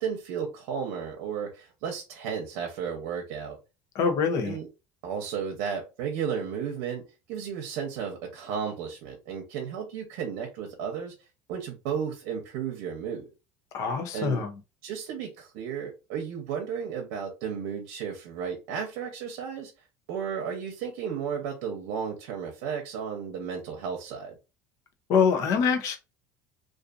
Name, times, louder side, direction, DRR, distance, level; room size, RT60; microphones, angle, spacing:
voice 1, 0.0-3.6 4.4-4.7 5.0-11.1 11.5-13.3 14.1-14.4 14.8-19.7 20.1-24.3, right 7 dB, 80° right, 0.7 m, -33 dB
voice 2, 3.9-4.6 13.7-14.5 25.1-26.0, left 6 dB, 50° left, 0.6 m, -24 dB
2.5 x 2.4 x 2.4 m
cardioid pair, 155°, 7 cm